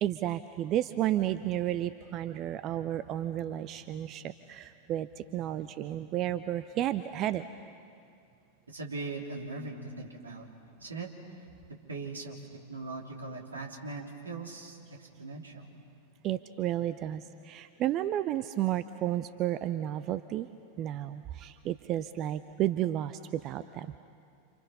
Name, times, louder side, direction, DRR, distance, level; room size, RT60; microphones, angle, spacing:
voice 1, 0.0-7.5 16.2-20.5 20.8-23.9, right 12 dB, 35° right, 13 dB, 0.6 m, -32 dB
voice 2, 8.7-10.5 10.8-11.1 11.9-12.4 12.7-15.7, right 3 dB, 75° right, 0 dB, 3.3 m, -40 dB
29.0 x 28.0 x 5.6 m, 2.4 s
figure-of-eight pair, 90°, 0 cm